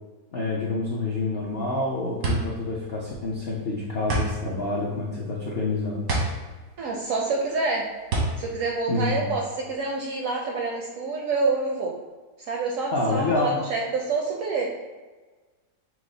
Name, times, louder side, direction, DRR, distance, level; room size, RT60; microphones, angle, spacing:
voice 1, 0.3-6.1 8.9-9.3 12.9-13.6, left 2 dB, 70° left, -4 dB, 0.5 m, -27 dB
sound 1, 1.4-9.7, right 2 dB, 85° right, 1.7 m, -30 dB
voice 2, 6.8-7.9 8.4-11.9 12.4-14.8, right 3 dB, 70° right, -1 dB, 0.8 m, -27 dB
5.9 x 2.0 x 3.7 m, 1.3 s
omnidirectional pair, 1.8 m